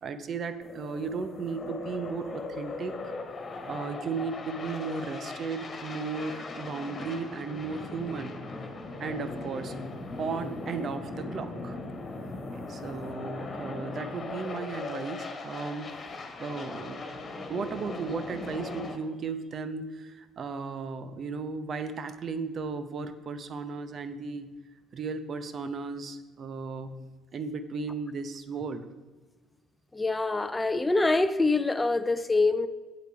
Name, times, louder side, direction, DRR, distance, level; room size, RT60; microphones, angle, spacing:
voice 1, 0.0-3.1 3.7-8.4 9.0-9.7 10.2-11.8 12.5-15.9 16.4-17.0 17.5-24.5 24.9-28.9, right 4 dB, 45° right, 11 dB, 0.8 m, -35 dB
sound 1, 0.6-19.0, left 3 dB, 35° left, 1.6 m, -39 dB
voice 2, 29.9-32.7, left 3 dB, 15° left, 12 dB, 0.6 m, -25 dB
8.2 x 7.9 x 4.7 m, 1.3 s
figure-of-eight pair, 50°, 0 cm